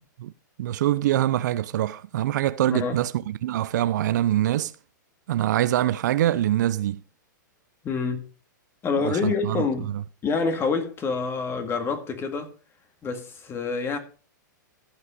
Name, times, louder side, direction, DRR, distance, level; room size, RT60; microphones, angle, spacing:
voice 1, 0.6-3.1 3.4-4.7 5.3-7.0 9.0-10.0, right 13 dB, 65° right, 0.7 m, -24 dB
voice 2, 7.8-8.3 8.8-9.9 10.2-12.5 13.0-14.0, left 4 dB, 25° left, 2.1 m, -27 dB
14.5 x 5.7 x 5.1 m
hypercardioid pair, 120°, 10 cm